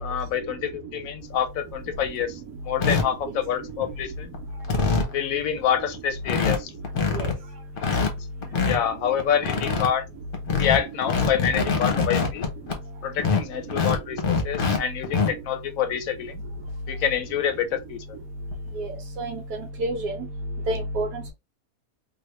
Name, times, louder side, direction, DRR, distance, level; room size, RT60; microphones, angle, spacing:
voice 1, 0.0-2.4 2.6-4.3 5.1-6.7 7.9-8.0 8.6-10.1 10.6-12.5 13.0-16.4 16.9-18.0, left 9 dB, 70° left, 1.0 m, -27 dB
sound 1, 1.4-1.5 1.9-2.2 2.8-3.0 3.7-4.0 4.3-4.4 4.6-5.1 5.7-5.8 5.9-6.0 6.2-6.6 6.8-7.3 7.8-8.8 9.2-9.9 10.3-12.8 13.2-14.8 15.0-15.3 16.7-16.8 17.2-17.3 18.5-18.7, left 5 dB, 45° left, 0.8 m, -24 dB
voice 2, 18.8-19.4 19.8-20.1 20.7-21.3, right 1 dB, 80° right, 1.3 m, -28 dB
3.4 x 2.3 x 3.1 m
omnidirectional pair, 1.7 m